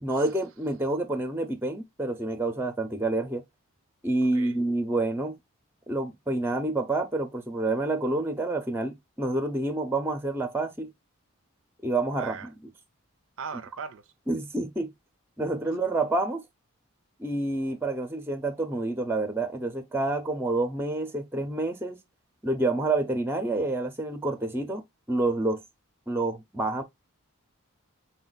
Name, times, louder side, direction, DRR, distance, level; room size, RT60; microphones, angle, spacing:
voice 1, 0.0-3.4 4.0-5.4 5.9-10.9 11.8-12.5 14.3-14.9 15.4-16.4 17.2-22.0 22.4-24.8 25.1-25.6 26.1-26.8, right 2 dB, 10° right, 0.6 m, -28 dB
voice 2, 4.2-4.6 12.2-12.5 13.4-14.1, right 6 dB, 65° right, 0.4 m, -39 dB
5.3 x 2.2 x 3.9 m
head